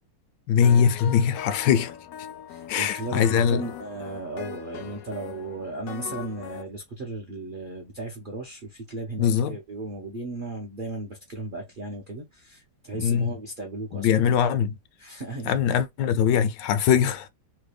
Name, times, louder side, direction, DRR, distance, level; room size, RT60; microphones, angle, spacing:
voice 1, 0.5-1.9 2.7-3.6 9.2-9.6 13.0-13.3 13.9-14.8 15.4-17.3, left 8 dB, 90° left, 1.3 m, -22 dB
sound 1, 0.6-6.6, left 10 dB, 70° left, 0.9 m, -40 dB
voice 2, 2.5-14.4 15.0-15.5, right 2 dB, 50° right, 0.6 m, -35 dB
3.3 x 2.2 x 3.2 m
omnidirectional pair, 1.9 m